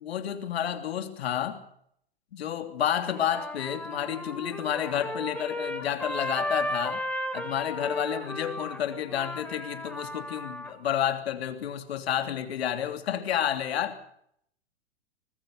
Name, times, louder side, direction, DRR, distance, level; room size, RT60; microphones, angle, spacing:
voice 1, 0.0-1.6 2.3-7.0 7.3-14.0, left 10 dB, 70° left, 8 dB, 3.2 m, -30 dB
Trumpet, 3.1-10.7, left 1 dB, 5° left, 5.0 m, -35 dB
24.5 x 20.5 x 5.5 m, 0.69 s
hypercardioid pair, 105°, 32 cm